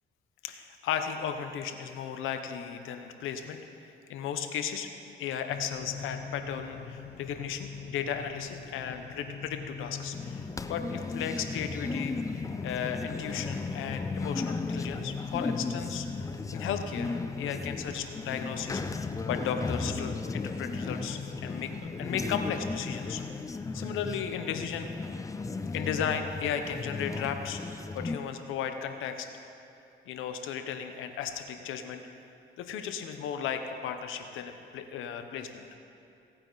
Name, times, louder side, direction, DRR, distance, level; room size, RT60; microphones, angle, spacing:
voice 1, 0.4-4.9 5.2-16.1 16.5-17.1 17.4-23.2 23.7-24.9 25.7-27.6 27.9-29.3 30.1-32.0 32.6-35.6, left 8 dB, 85° left, 7 dB, 0.9 m, -35 dB
sound 1, 5.5-23.4, left 6 dB, 55° left, 1.0 m, -43 dB
sound 2, 10.1-28.2, left 3 dB, 15° left, 0.4 m, -36 dB
17.5 x 8.9 x 4.0 m, 2.6 s
cardioid pair, 90°, 20 cm